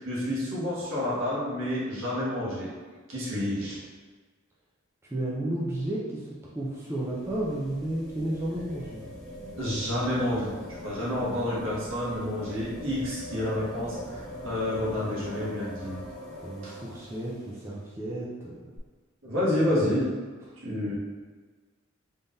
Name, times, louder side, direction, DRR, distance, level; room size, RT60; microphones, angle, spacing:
voice 1, 0.0-2.7 3.1-3.8 9.5-16.0 16.6-16.7 19.2-20.1 20.6-20.9, left 1 dB, 70° right, -8 dB, 1.4 m, -29 dB
voice 2, 5.1-9.0 11.0-11.5 16.4-18.7 20.9-21.0, right 1 dB, 10° right, -6 dB, 0.5 m, -33 dB
sound 1, 6.6-17.6 18.8-18.9, equal, 5° left, 1.0 m, -42 dB
3.7 x 3.4 x 2.6 m, 1.4 s
head